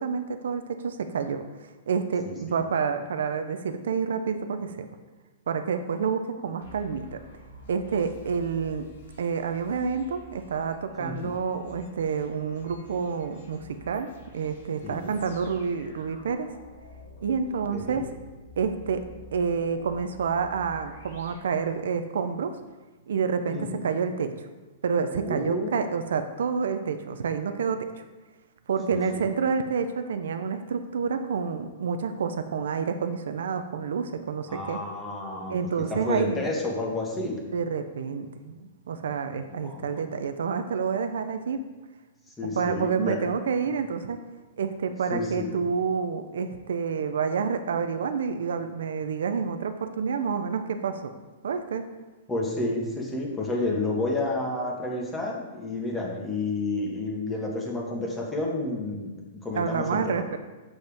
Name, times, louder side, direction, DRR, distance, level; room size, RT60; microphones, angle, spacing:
voice 1, 0.0-1.4 1.9-4.9 5.5-7.2 7.7-8.9 9.2-16.5 17.2-18.1 18.6-19.1 19.3-22.6 23.1-24.5 24.8-27.9 28.7-34.8 35.5-36.4 37.5-41.6 42.6-44.2 44.6-51.1 51.4-51.8 59.5-60.4, right 6 dB, 85° right, 8 dB, 0.6 m, -28 dB
voice 2, 2.2-2.6 11.0-11.3 14.8-15.1 17.7-18.0 23.5-23.8 25.2-25.8 28.9-29.2 34.5-37.4 39.6-39.9 42.4-43.2 45.1-45.6 52.3-60.2, left 2 dB, 10° left, -2 dB, 1.5 m, -30 dB
sound 1, 6.6-22.2, left 1 dB, 85° left, 2.0 m, -49 dB
7.9 x 7.1 x 3.5 m, 1.2 s
hypercardioid pair, 150°, 0 cm